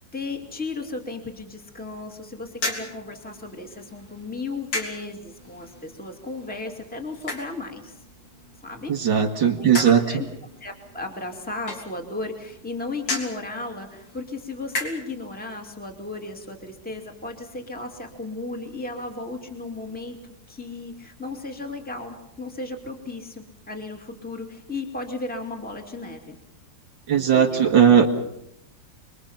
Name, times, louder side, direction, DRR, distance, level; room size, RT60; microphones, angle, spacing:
voice 1, 0.0-8.0 8.6-8.9 9.6-10.3 10.6-20.2 20.5-26.4 27.1-27.7, left 3 dB, 5° left, 3 dB, 2.4 m, -35 dB
sound 1, 2.5-15.3, left 2 dB, 85° left, 4.2 m, -37 dB
voice 2, 8.9-10.0 27.1-28.1, right 8 dB, 80° right, 3 dB, 2.7 m, -17 dB
29.5 x 22.0 x 5.8 m, 0.79 s
omnidirectional pair, 2.0 m